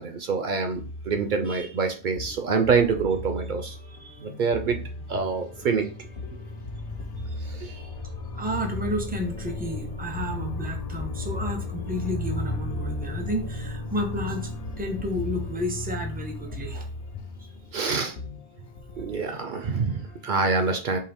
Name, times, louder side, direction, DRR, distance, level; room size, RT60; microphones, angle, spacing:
voice 1, 0.0-4.8 5.1-6.1 7.4-7.9 17.7-18.2 19.0-21.0, right 5 dB, 55° right, 6 dB, 0.6 m, -26 dB
sound 1, 0.8-20.5, left 2 dB, 55° left, 0.9 m, -40 dB
sound 2, 5.4-18.0, left 1 dB, 75° left, 0.3 m, -35 dB
voice 2, 8.3-14.5 14.8-16.9, left 1 dB, 10° right, 4 dB, 0.5 m, -31 dB
4.6 x 2.8 x 3.4 m, 0.36 s
omnidirectional pair, 1.2 m